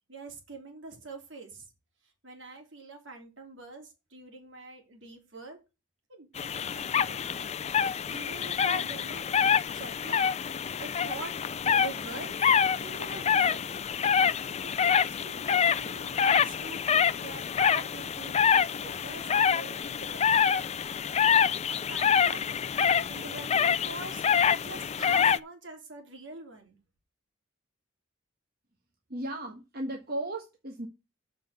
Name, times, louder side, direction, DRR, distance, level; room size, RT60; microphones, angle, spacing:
voice 1, 0.1-1.7 2.2-5.6 6.1-7.2 8.1-9.4 9.7-10.2 10.8-11.4 11.6-12.4 12.8-13.8 14.6-20.5 21.7-22.4 23.1-24.2 24.5-26.8, right 3 dB, 70° right, 3 dB, 3.3 m, -45 dB
sound 1, 6.4-25.4, left 7 dB, 30° left, 0.4 m, -26 dB
voice 2, 29.1-30.9, right 1 dB, 50° right, 2 dB, 1.5 m, -35 dB
7.5 x 5.1 x 6.8 m, 0.27 s
head